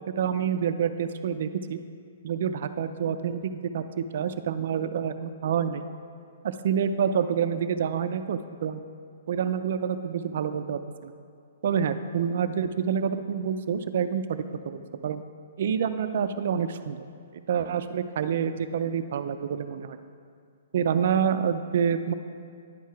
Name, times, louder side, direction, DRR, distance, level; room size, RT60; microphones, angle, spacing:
voice 1, 0.1-1.8 2.2-5.9 6.4-8.8 9.3-11.1 11.6-15.2 15.6-17.0 17.5-20.0 20.7-22.1, right 7 dB, 55° right, 10 dB, 0.3 m, -27 dB
10.0 x 4.7 x 4.6 m, 2.2 s
hypercardioid pair, 165°, 0 cm